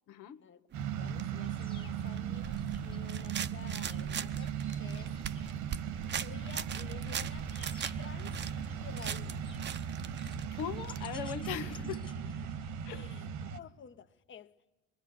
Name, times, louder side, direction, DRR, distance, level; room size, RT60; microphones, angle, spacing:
voice 1, 0.1-0.4 10.5-12.0 12.8-13.0, left 9 dB, 85° left, 1.5 m, -39 dB
sound 1, 0.7-11.1, right 8 dB, 35° right, 0.8 m, -42 dB
sound 2, 0.7-13.6, right 8 dB, 75° right, 1.6 m, -38 dB
voice 2, 0.9-5.2 6.2-7.5 8.0-8.4 8.8-9.5 12.9-14.7, left 7 dB, 40° left, 1.2 m, -52 dB
sound 3, 1.4-12.9, left 3 dB, 15° left, 1.6 m, -55 dB
23.5 x 23.0 x 9.6 m
cardioid pair, 110°, 30 cm